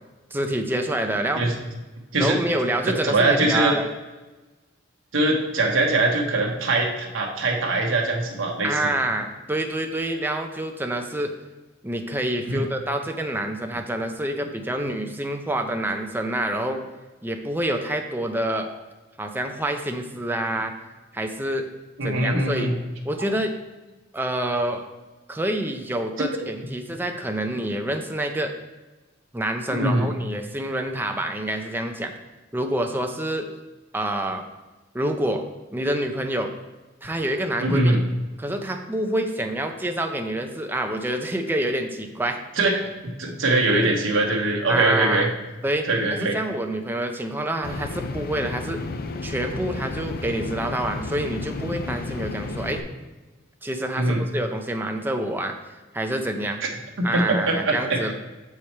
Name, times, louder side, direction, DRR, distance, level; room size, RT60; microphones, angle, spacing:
voice 1, 0.3-1.4 2.1-3.9 8.6-11.3 11.8-16.8 17.2-18.7 19.2-20.7 21.1-21.7 22.0-22.7 23.0-23.5 24.1-24.8 25.3-28.5 29.3-32.1 32.5-33.5 33.9-34.4 34.9-35.4 35.7-36.5 37.0-38.0 38.4-42.4 44.7-45.3 45.6-48.8 49.2-52.8 53.6-55.6 55.9-56.6 57.0-58.1, right 1 dB, 10° right, 4 dB, 0.6 m, -27 dB
voice 2, 3.0-3.7 5.1-8.9 12.5-12.6 18.5-18.6 22.0-22.8 26.2-26.3 29.7-30.1 37.6-38.0 42.6-42.8 43.0-45.3 45.8-46.4 54.0-54.2 57.0-58.1, right 2 dB, 85° right, 0 dB, 1.0 m, -22 dB
sound 1, 47.6-52.8, left 3 dB, 50° left, 0.5 m, -32 dB
6.9 x 4.8 x 4.3 m, 1.2 s
head